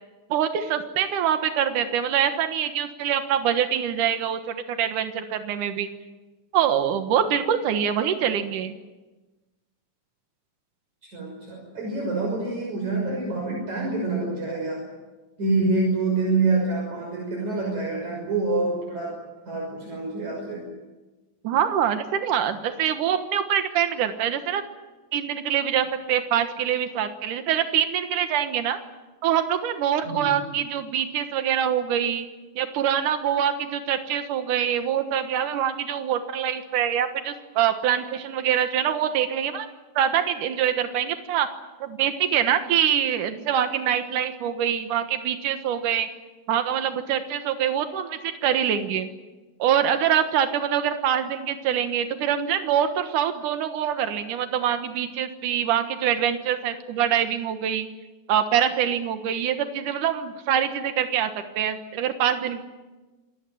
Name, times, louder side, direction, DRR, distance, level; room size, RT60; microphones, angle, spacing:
voice 1, 0.3-5.9 6.5-8.7 21.4-24.6 25.1-28.8 29.2-32.3 32.6-39.7 40.0-41.5 41.8-46.1 46.5-49.1 49.6-57.9 58.3-61.3 61.6-62.6, right 9 dB, 85° right, 8 dB, 2.9 m, -24 dB
voice 2, 11.1-14.8 15.4-19.1 19.5-20.7 30.0-30.3, right 3 dB, 65° right, -2 dB, 7.5 m, -26 dB
27.0 x 19.5 x 9.3 m, 1.2 s
omnidirectional pair, 3.6 m